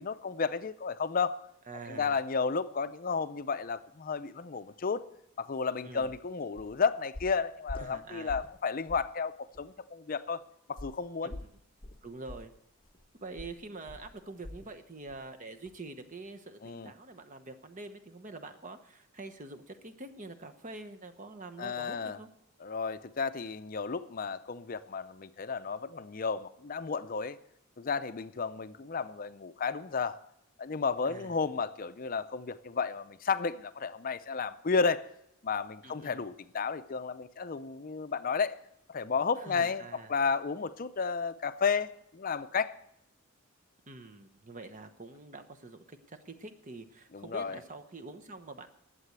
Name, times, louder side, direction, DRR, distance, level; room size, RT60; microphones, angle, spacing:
voice 1, 0.0-1.4 1.9-5.0 5.4-10.4 10.7-11.4 16.6-16.9 21.6-22.2 22.6-27.4 27.8-30.2 30.6-35.1 35.4-38.6 38.9-42.7 47.1-47.6, left 5 dB, 40° left, 13 dB, 0.5 m, -32 dB
voice 2, 1.7-2.2 5.8-6.1 7.8-8.4 12.0-12.5 13.2-22.3 31.0-31.3 35.8-36.2 39.4-40.1 43.9-48.7, right 3 dB, 35° right, 8 dB, 1.0 m, -46 dB
sound 1, 6.0-6.2 6.6-6.8 7.1-8.6 8.9-9.1 9.5-9.7 10.8-14.8 15.1-15.3 15.7-15.8, left 1 dB, 25° left, 0.9 m, -46 dB
11.5 x 7.7 x 8.0 m, 0.78 s
head